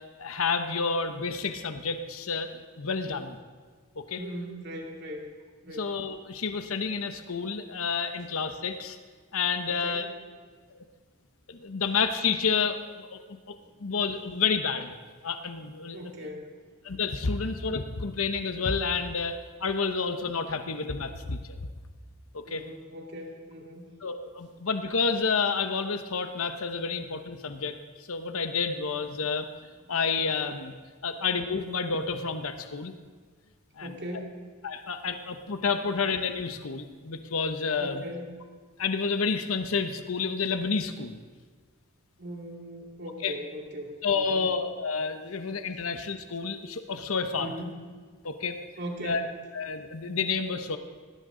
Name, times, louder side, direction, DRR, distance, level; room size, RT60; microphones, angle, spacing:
voice 1, 0.2-2.5 2.8-3.4 4.0-4.2 5.8-9.0 9.3-10.1 11.5-13.2 13.5-15.0 15.2-16.0 16.8-21.6 22.3-22.6 24.0-29.5 29.9-30.7 31.0-32.9 33.8-33.9 34.6-38.0 38.8-41.2 43.2-43.4 44.0-47.5 48.2-48.6 49.0-49.2 49.5-50.8, left 5 dB, 70° left, 8 dB, 1.0 m, -29 dB
voice 2, 4.1-5.3 5.6-5.9 9.6-10.1 13.6-13.9 15.9-16.8 22.4-23.9 29.8-30.0 31.0-31.2 33.8-34.4 37.8-38.3 42.2-44.5 47.4-47.8 48.8-49.3, equal, 50° right, 0 dB, 2.7 m, -40 dB
19.0 x 17.0 x 3.9 m, 1.5 s
head